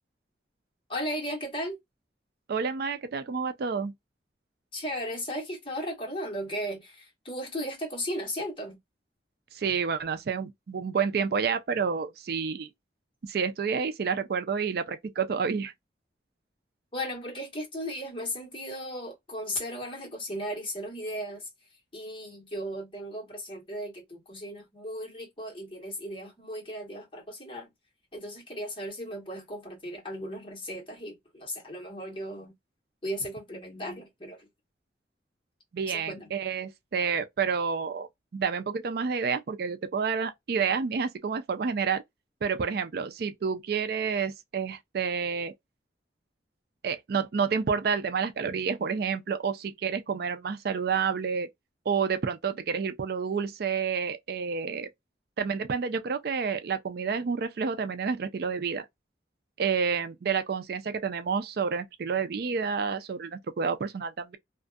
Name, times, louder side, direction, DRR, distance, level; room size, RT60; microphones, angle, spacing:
voice 1, 0.9-1.8 4.7-8.8 16.9-21.5 21.9-27.7 28.1-32.5 33.0-34.5 35.9-36.3, equal, 30° left, 1.3 m, -36 dB
voice 2, 2.5-3.9 9.5-12.7 13.2-15.7 35.7-38.1 38.3-42.0 42.4-45.5 46.8-51.5 51.9-54.9 55.4-58.9 59.6-64.4, right 6 dB, 60° right, 0.4 m, -29 dB
2.5 x 2.4 x 2.3 m
head